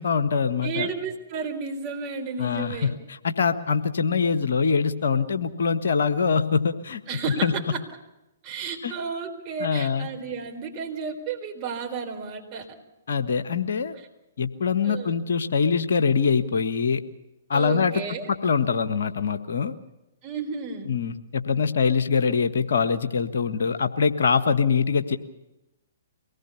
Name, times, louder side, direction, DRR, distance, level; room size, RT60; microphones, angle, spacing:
voice 1, 0.0-0.9 2.4-2.9 3.2-7.0 7.4-7.5 8.8-8.9 9.6-10.1 13.1-13.9 14.4-17.0 17.5-18.0 18.4-19.7 20.9-25.2, left 5 dB, 65° left, 10 dB, 1.4 m, -23 dB
voice 2, 0.6-3.0 7.1-7.5 8.4-12.7 14.8-15.2 17.5-18.3 20.2-20.9, right 5 dB, 30° right, 2 dB, 4.3 m, -32 dB
23.5 x 19.0 x 7.1 m, 0.95 s
figure-of-eight pair, 120°, 0 cm